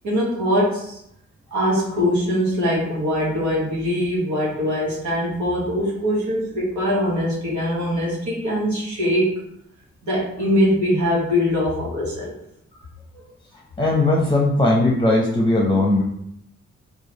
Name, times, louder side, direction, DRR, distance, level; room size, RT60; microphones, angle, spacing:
voice 1, 0.0-1.0 1.5-9.4 10.0-12.3, equal, 80° right, -5 dB, 1.2 m, -22 dB
voice 2, 13.8-16.0, left 2 dB, 15° left, -3 dB, 0.7 m, -18 dB
3.1 x 2.4 x 3.8 m, 0.74 s
supercardioid pair, 50°, 29 cm